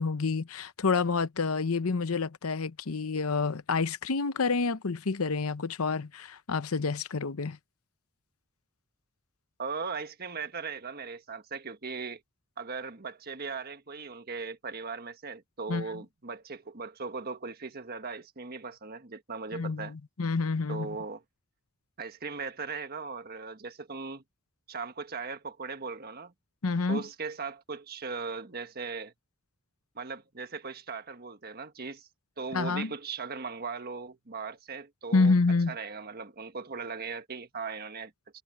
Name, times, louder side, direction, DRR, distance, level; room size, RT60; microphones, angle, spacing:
voice 1, 0.0-7.6 15.7-15.8 19.5-21.0 26.6-27.0 32.5-32.9 35.1-35.7, left 4 dB, 85° left, 0.8 m, -28 dB
voice 2, 9.6-12.2 12.6-19.9 20.7-21.2 22.0-24.2 24.7-26.3 26.9-29.1 29.9-32.1 32.4-35.4 35.7-38.1, right 4 dB, 45° right, 1.5 m, -38 dB
head